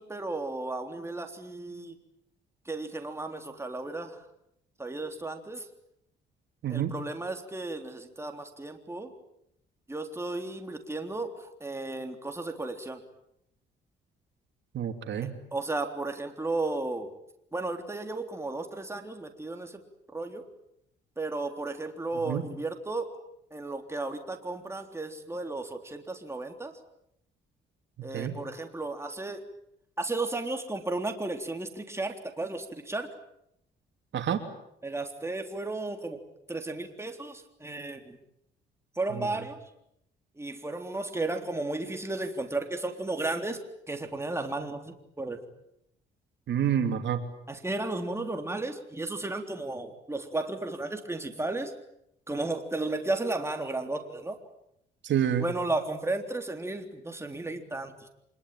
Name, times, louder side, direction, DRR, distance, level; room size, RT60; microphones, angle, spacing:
voice 1, 0.0-2.0 2.7-4.2 4.8-5.6 6.7-9.1 9.9-11.3 11.6-13.0 15.5-17.1 17.5-19.7 20.1-20.4 21.2-23.1 23.5-26.7 28.0-29.4 30.0-33.1 34.8-36.2 36.5-38.2 39.0-39.6 40.4-43.6 43.9-45.4 47.5-51.7 52.3-54.4 55.4-58.1, right 2 dB, 15° right, 5 dB, 3.6 m, -34 dB
voice 2, 6.6-6.9 14.7-15.3 22.2-22.4 28.1-28.4 34.1-34.4 39.1-39.3 46.5-47.2 55.0-55.5, right 9 dB, 65° right, 6 dB, 3.2 m, -28 dB
26.0 x 21.5 x 9.3 m, 0.76 s
cardioid pair, 90°, 20 cm